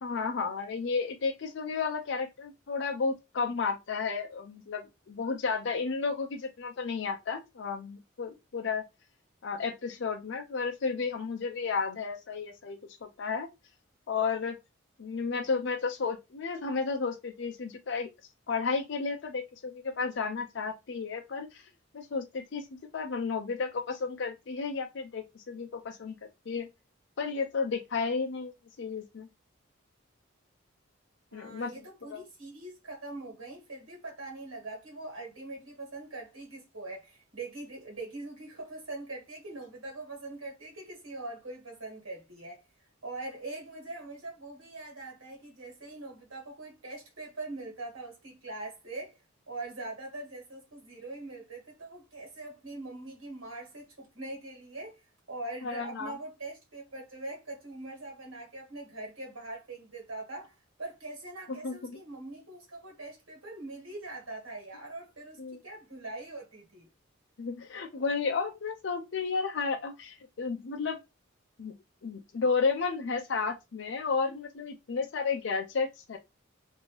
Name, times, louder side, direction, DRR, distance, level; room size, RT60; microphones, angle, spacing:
voice 1, 0.0-8.8 9.4-13.5 14.1-14.6 15.0-18.1 18.5-21.7 21.9-22.7 22.9-26.2 26.5-26.7 27.2-29.3 31.3-31.7 32.0-32.2 55.6-56.1 61.6-62.0 65.4-65.6 67.4-71.0 71.6-71.7 72.0-76.2, left 5 dB, 60° left, 0.4 m, -32 dB
voice 2, 31.3-42.6 43.0-49.2 49.5-55.0 55.3-66.9, right 2 dB, 80° right, 1.7 m, -42 dB
2.9 x 2.6 x 3.0 m
head